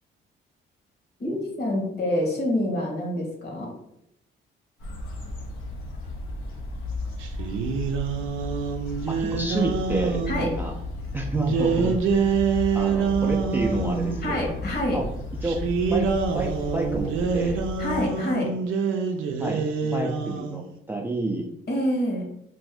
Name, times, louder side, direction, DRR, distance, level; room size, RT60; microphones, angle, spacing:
voice 1, 1.2-3.7 10.3-10.5 14.2-15.0 17.8-18.5 21.7-22.3, left 1 dB, 55° left, 0 dB, 1.2 m, -26 dB
sound 1, 4.8-18.0, left 1 dB, 85° left, 0.7 m, -34 dB
sound 2, 7.2-10.5 11.3-14.3 15.4-20.7, right 5 dB, 85° right, 0.4 m, -26 dB
voice 2, 9.1-10.7 11.1-12.3 12.7-14.5 14.9-15.1 15.4-15.6 15.9-17.6 19.4-19.6 19.9-21.5, right 2 dB, 10° right, 0 dB, 0.4 m, -30 dB
2.6 x 2.5 x 3.3 m, 0.78 s
cardioid pair, 90°, 20 cm